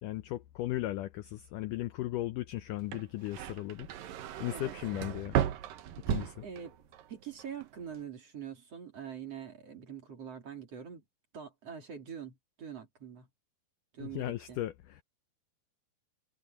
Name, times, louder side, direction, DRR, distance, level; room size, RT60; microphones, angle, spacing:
voice 1, 0.0-3.9 4.4-5.4 6.1-6.5 14.0-15.0, left 15 dB, 80° left, 1.8 m, -36 dB
sound 1, 2.8-7.1 7.4-8.0, right 10 dB, 65° right, 2.7 m, -35 dB
voice 2, 6.4-6.7 7.1-11.0 11.3-13.3 13.9-14.6, right 8 dB, 40° right, 4.1 m, -44 dB
omnidirectional pair, 4.6 m